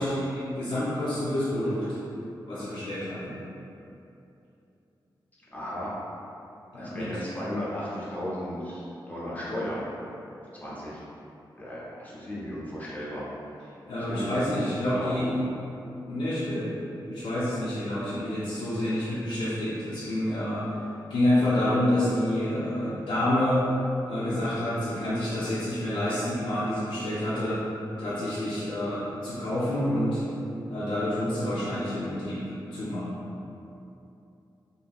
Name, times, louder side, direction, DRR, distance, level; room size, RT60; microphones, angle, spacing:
voice 1, 0.0-1.9 2.5-3.4 6.7-7.1 13.9-15.4 16.1-16.7 17.1-20.6 21.1-23.6 24.1-27.6 28.0-30.2 30.7-33.1, left 1 dB, 80° left, -12 dB, 0.6 m, -28 dB
voice 2, 5.5-5.9 6.7-9.8 10.6-11.0 11.6-13.2 13.9-15.3, equal, 20° left, -8 dB, 0.7 m, -35 dB
2.8 x 2.7 x 2.3 m, 2.8 s
wide cardioid pair, 95°, 8 cm